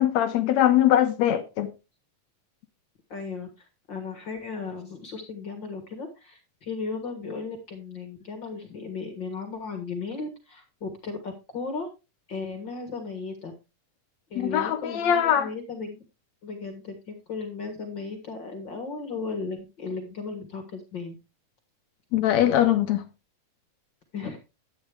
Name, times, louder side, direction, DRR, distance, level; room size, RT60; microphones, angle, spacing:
voice 1, 0.0-1.7 14.4-15.5 22.1-23.0, left 11 dB, 70° left, 1.8 m, -22 dB
voice 2, 3.1-11.9 12.3-13.5 14.3-16.0 16.4-21.2 24.1-24.4, left 4 dB, 45° left, 1.7 m, -36 dB
11.0 x 9.0 x 3.4 m
omnidirectional pair, 3.7 m